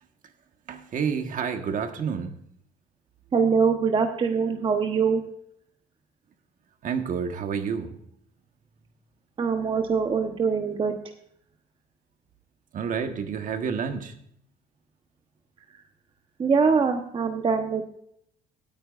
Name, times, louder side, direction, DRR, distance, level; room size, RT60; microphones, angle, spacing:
voice 1, 0.7-2.4 6.8-7.9 12.7-14.1, right 6 dB, 50° right, 7 dB, 1.4 m, -29 dB
voice 2, 3.3-5.2 9.4-11.0 16.4-17.9, right 5 dB, 30° right, 5 dB, 1.0 m, -23 dB
17.5 x 9.1 x 2.5 m, 0.67 s
cardioid pair, 110°, 17 cm